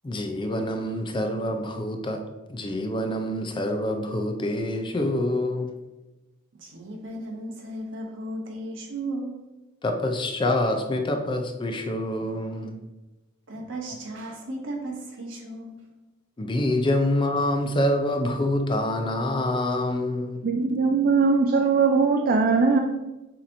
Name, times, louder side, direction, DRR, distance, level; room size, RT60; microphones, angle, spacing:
voice 1, 0.0-2.2 2.5-5.7 9.8-12.7 16.4-20.4, left 1 dB, 25° left, 5 dB, 0.4 m, -26 dB
voice 2, 6.6-9.4 13.5-15.9, right 1 dB, 65° right, 0 dB, 1.1 m, -35 dB
voice 3, 20.4-22.8, right 4 dB, 45° right, 3 dB, 0.4 m, -20 dB
7.0 x 2.9 x 2.6 m, 1.1 s
head